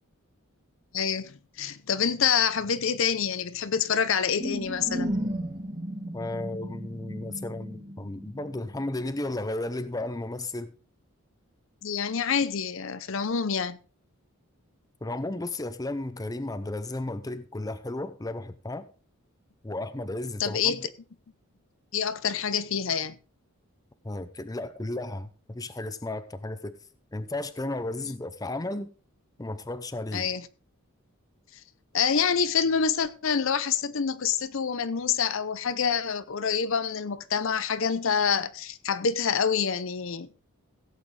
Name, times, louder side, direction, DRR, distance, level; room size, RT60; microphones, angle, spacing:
voice 1, 0.9-5.2 11.8-13.8 20.4-20.9 21.9-23.2 30.1-30.5 31.9-40.3, left 6 dB, 60° left, 0.6 m, -27 dB
sound 1, 4.4-9.0, equal, 35° right, 2.6 m, -34 dB
voice 2, 6.1-10.8 15.0-18.9 19.6-20.8 24.0-26.8 27.1-28.9 29.4-30.3, left 2 dB, 15° left, 0.6 m, -34 dB
16.5 x 8.4 x 3.3 m
head